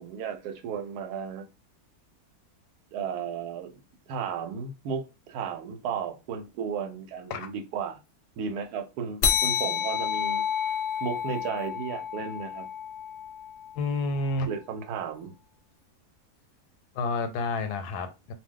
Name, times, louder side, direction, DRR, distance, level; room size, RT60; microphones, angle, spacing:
voice 1, 0.0-1.5 2.9-3.7 4.1-8.0 8.4-10.5 11.0-12.7 14.5-15.4, right 7 dB, 80° right, 1.1 m, -34 dB
sound 1, 9.2-14.1, left 8 dB, 65° left, 0.8 m, -30 dB
voice 2, 13.8-14.5 16.9-18.3, left 3 dB, 85° left, 1.2 m, -29 dB
2.6 x 2.1 x 3.6 m
omnidirectional pair, 1.7 m